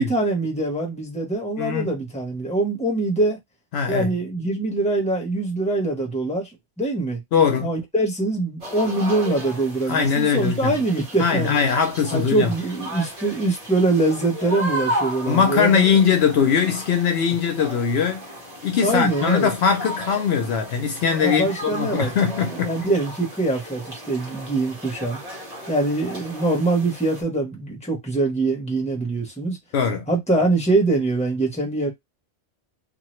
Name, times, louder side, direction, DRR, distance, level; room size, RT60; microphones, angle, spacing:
voice 1, 0.0-3.4 3.9-6.5 6.8-7.2 7.6-11.6 12.1-15.8 18.8-19.5 21.2-25.2 25.7-29.6 30.1-31.9, right 2 dB, 5° left, 0.9 m, -23 dB
voice 2, 1.6-1.9 3.7-4.1 7.3-7.7 9.9-10.7 11.2-12.5 15.3-18.2 18.6-22.7 29.7-30.1, left 6 dB, 70° left, 0.8 m, -21 dB
sound 1, 8.6-27.2, equal, 35° right, 1.3 m, -35 dB
2.8 x 2.4 x 3.0 m
omnidirectional pair, 1.2 m